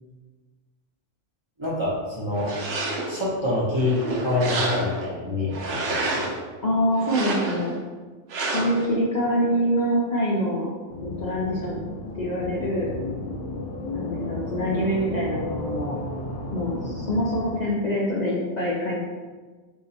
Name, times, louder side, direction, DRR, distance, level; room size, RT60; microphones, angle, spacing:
voice 1, 1.6-2.5 3.1-6.2, left 2 dB, 25° right, -6 dB, 0.8 m, -26 dB
sound 1, 2.3-3.2 3.7-5.1 5.5-6.4 7.0-7.8 8.3-8.9, right 2 dB, 65° right, 0.9 m, -29 dB
voice 2, 6.6-7.8 8.5-10.7 11.0-11.8 12.2-12.9 13.9-16.0 16.5-19.0, equal, 45° left, -5 dB, 0.6 m, -25 dB
sound 2, 10.9-17.5, left 2 dB, 75° left, 1.0 m, -33 dB
3.8 x 2.7 x 4.2 m, 1.4 s
omnidirectional pair, 1.2 m